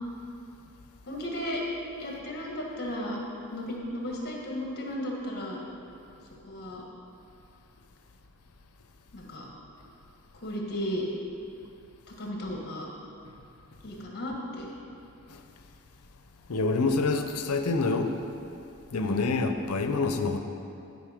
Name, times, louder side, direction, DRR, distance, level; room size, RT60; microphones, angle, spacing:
voice 1, 1.1-1.6 2.0-3.2 3.5-5.6 6.4-6.8 9.1-9.5 10.3-11.0 12.1-12.9 13.8-14.7 18.9-19.4, equal, 45° left, -1 dB, 1.6 m, -34 dB
voice 2, 16.5-18.2 18.9-20.4, left 3 dB, 85° left, 6 dB, 0.6 m, -27 dB
11.0 x 5.4 x 5.1 m, 2.6 s
head